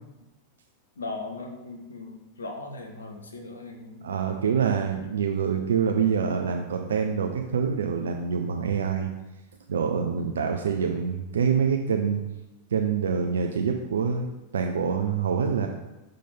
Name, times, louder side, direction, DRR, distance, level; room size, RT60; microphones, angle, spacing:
voice 1, 1.0-4.1 10.4-10.7, left 3 dB, 70° left, 3 dB, 0.8 m, -38 dB
voice 2, 4.0-9.1 9.7-12.3 12.7-14.3 14.5-15.7, right 6 dB, 65° right, 4 dB, 0.4 m, -26 dB
6.5 x 3.8 x 5.4 m, 1.0 s
figure-of-eight pair, 90°, 0 cm